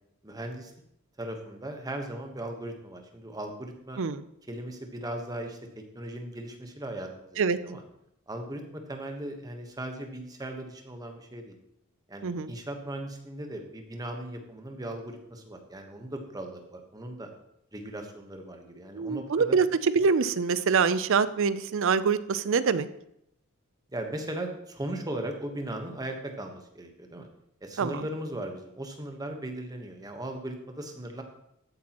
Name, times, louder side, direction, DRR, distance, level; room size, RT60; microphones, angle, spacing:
voice 1, 0.2-0.7 1.2-4.0 4.5-7.8 8.3-11.6 12.1-17.3 17.7-19.6 23.9-27.3 27.6-31.2, right 1 dB, 15° right, 4 dB, 1.1 m, -38 dB
voice 2, 12.2-12.5 18.9-22.9 27.8-28.0, right 5 dB, 60° right, 14 dB, 0.5 m, -25 dB
13.5 x 8.4 x 3.0 m, 0.78 s
head